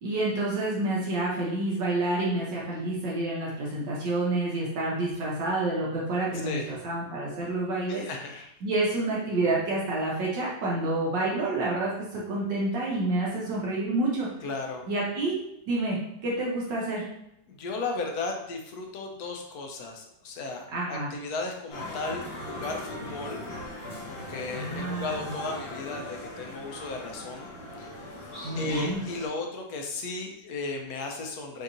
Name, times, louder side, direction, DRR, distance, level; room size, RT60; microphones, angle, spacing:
voice 1, 0.0-8.0 8.6-14.3 14.9-15.4 15.7-16.0 16.2-17.0 20.7-21.1 24.5-25.3 28.4-29.0, right 2 dB, 70° right, -5 dB, 1.6 m, -28 dB
voice 2, 6.4-6.8 7.9-8.4 14.4-14.8 17.5-23.4 24.1-27.5 27.8-27.9 28.6-31.6, left 3 dB, 65° left, 2 dB, 1.1 m, -35 dB
sound 1, 21.7-29.3, left 1 dB, 85° left, 2.0 m, -39 dB
6.4 x 2.9 x 2.6 m, 0.78 s
omnidirectional pair, 2.1 m